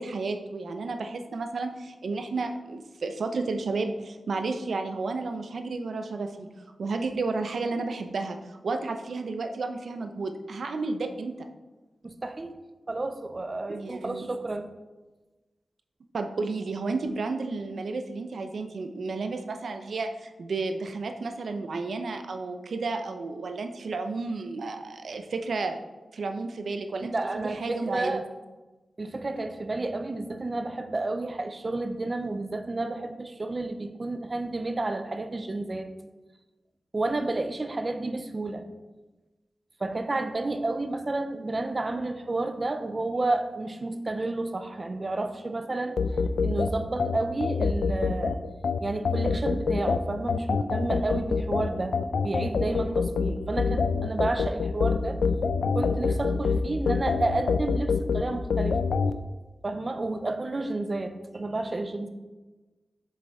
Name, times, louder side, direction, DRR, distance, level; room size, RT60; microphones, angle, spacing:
voice 1, 0.0-6.5 6.8-11.5 13.7-14.3 16.1-25.8 26.1-28.2, right 3 dB, 70° right, 6 dB, 0.7 m, -32 dB
voice 2, 12.0-12.6 12.9-14.7 27.1-28.3 29.0-35.9 36.9-38.6 39.8-46.0 46.4-48.4 48.8-52.0 52.2-55.2 55.6-58.8 59.6-62.1, right 2 dB, 30° right, 8 dB, 0.5 m, -31 dB
sound 1, 46.0-59.1, left 5 dB, 85° left, 0.4 m, -26 dB
7.7 x 6.8 x 3.6 m, 1.2 s
wide cardioid pair, 145°, 0 cm